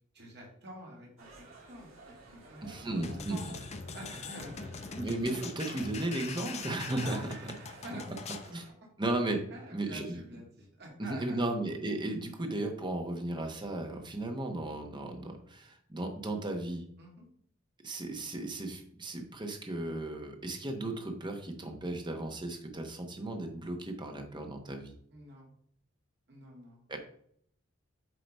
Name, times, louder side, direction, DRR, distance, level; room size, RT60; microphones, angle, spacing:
voice 1, 0.1-3.5 3.9-4.9 7.0-8.2 9.5-11.5 13.9-14.2 17.0-17.3 25.1-25.5 26.3-27.0, right 1 dB, 55° right, -1 dB, 2.0 m, -48 dB
sound 1, 1.2-8.7, right 3 dB, 85° right, 2.3 m, -54 dB
voice 2, 2.6-3.4 5.0-7.2 8.5-8.6 9.0-9.4 9.7-10.2 11.0-16.8 17.8-24.9 26.9-27.0, right 2 dB, 25° right, 4 dB, 1.0 m, -35 dB
sound 2, 3.0-8.5, left 5 dB, 35° left, 0.5 m, -43 dB
7.8 x 2.9 x 5.3 m, 0.66 s
head